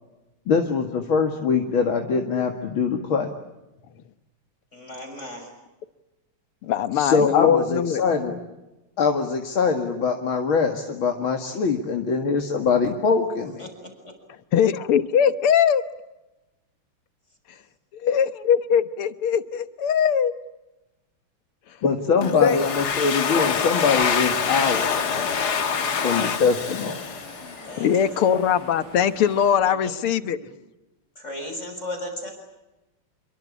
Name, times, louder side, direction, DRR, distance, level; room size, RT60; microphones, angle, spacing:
voice 1, 0.5-3.3 7.0-8.4 9.0-13.7 21.8-25.1 26.0-27.0, left 5 dB, 70° left, 4 dB, 2.7 m, -23 dB
voice 2, 4.7-5.5 13.6-13.7 14.0-14.1 25.8-26.1 27.7-28.4 29.6-30.4 31.2-32.3, left 1 dB, 30° left, 4 dB, 7.0 m, -36 dB
voice 3, 6.6-8.0 14.5-15.8 17.9-20.3 22.4-22.6 25.9-26.2 27.8-30.4, left 8 dB, 90° left, 12 dB, 2.2 m, -21 dB
Domestic sounds home sounds, 22.2-27.8, left 6 dB, 50° left, 2.0 m, -25 dB
sound 1, 24.3-29.5, right 1 dB, 85° right, 9.2 m, -44 dB
28.5 x 23.5 x 8.5 m, 1.0 s
omnidirectional pair, 2.3 m